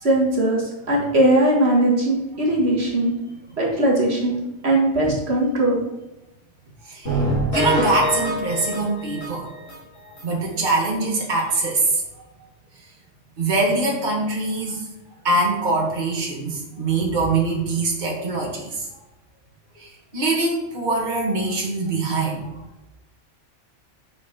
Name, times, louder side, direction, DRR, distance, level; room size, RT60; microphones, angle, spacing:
voice 1, 0.0-3.1 3.6-4.3 4.6-5.8, right 1 dB, 60° right, -2 dB, 1.9 m, -19 dB
voice 2, 6.8-7.2 7.5-9.5 10.2-12.0 13.4-14.8 15.2-18.9 19.8-22.5, right 2 dB, 40° right, -2 dB, 1.8 m, -23 dB
sound 1, 7.1-9.8 10.2-10.3 10.7-10.8 11.1-11.2, equal, 60° left, 3.5 m, -25 dB
7.0 x 6.4 x 5.2 m, 0.97 s
omnidirectional pair, 1.2 m